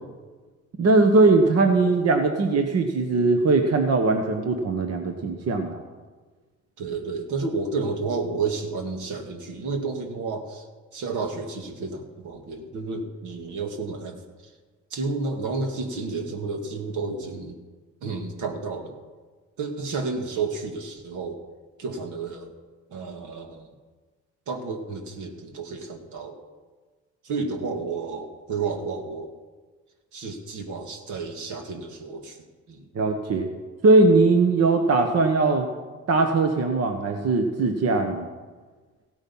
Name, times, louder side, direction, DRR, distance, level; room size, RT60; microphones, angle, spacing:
voice 1, 0.8-5.8 32.9-33.5 33.8-35.7 36.1-38.3, right 3 dB, 55° right, 5 dB, 1.2 m, -20 dB
voice 2, 6.8-10.6 10.9-14.2 14.9-17.6 18.0-19.0 19.6-21.4 21.8-22.5 22.9-23.7 24.5-26.4 27.2-29.3 30.1-32.4 32.7-32.9, right 4 dB, 80° right, 4 dB, 1.9 m, -31 dB
16.0 x 8.9 x 5.5 m, 1.4 s
cardioid pair, 90°, 30 cm